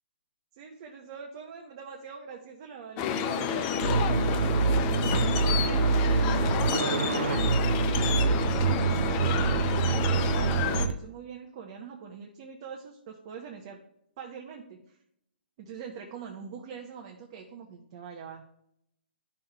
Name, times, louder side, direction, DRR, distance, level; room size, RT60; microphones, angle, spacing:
voice 1, 0.5-4.7 5.3-7.7 8.4-13.8 14.2-15.0 15.6-18.5, right 6 dB, 35° right, 1 dB, 0.8 m, -44 dB
sound 1, 3.0-10.9, left 7 dB, 20° left, 0.4 m, -30 dB
sound 2, 3.8-10.9, right 5 dB, 80° right, 0.4 m, -26 dB
11.5 x 5.6 x 2.3 m, 0.76 s
hypercardioid pair, 160°, 6 cm